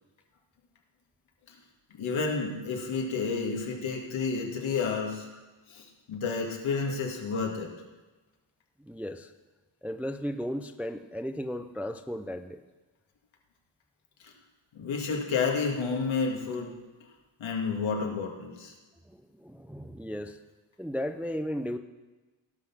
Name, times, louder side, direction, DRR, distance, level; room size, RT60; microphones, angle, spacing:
voice 1, 1.9-5.3 5.7-7.7 14.2-14.3 14.7-16.7 17.4-18.7, left 4 dB, 75° left, 1 dB, 2.1 m, -30 dB
voice 2, 8.8-9.3 9.8-12.6 19.1-20.4 20.8-21.8, equal, 5° right, 8 dB, 0.3 m, -35 dB
17.0 x 6.1 x 6.0 m, 1.2 s
wide cardioid pair, 125°, 47 cm